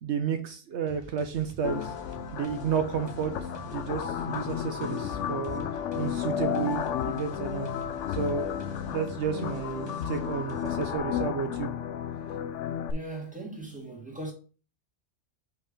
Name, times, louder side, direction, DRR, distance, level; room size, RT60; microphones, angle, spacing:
voice 1, 0.0-1.9 2.3-3.3 3.6-5.7 6.0-7.7 8.1-11.7, right 7 dB, 70° right, 1.0 m, -32 dB
sound 1, 0.9-11.0, right 2 dB, 25° right, 0.8 m, -48 dB
sound 2, 1.6-12.9, left 9 dB, 90° left, 0.9 m, -33 dB
voice 2, 12.9-14.3, right 2 dB, 5° right, 1.8 m, -38 dB
5.5 x 3.6 x 5.0 m
omnidirectional pair, 1.2 m